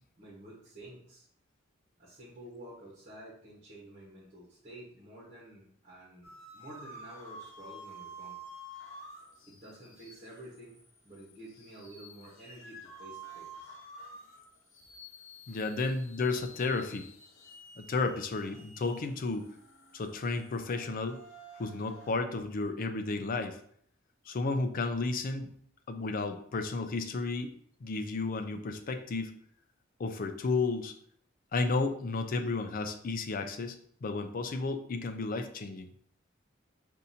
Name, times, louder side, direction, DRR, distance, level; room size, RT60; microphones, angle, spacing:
voice 1, 0.2-1.3 2.0-8.4 9.5-10.8 11.0-13.7 15.5-15.6, right 1 dB, 40° right, -5 dB, 1.2 m, -50 dB
sound 1, 6.2-22.1, right 1 dB, 80° left, 1.0 m, -51 dB
voice 2, 15.5-17.1 17.8-19.5 19.9-21.2 21.6-23.6 24.3-25.5 25.9-27.5 27.8-29.3 30.0-30.9 31.5-33.8 34.0-35.9, left 3 dB, 45° left, 7 dB, 0.4 m, -32 dB
5.5 x 2.6 x 2.7 m, 0.63 s
head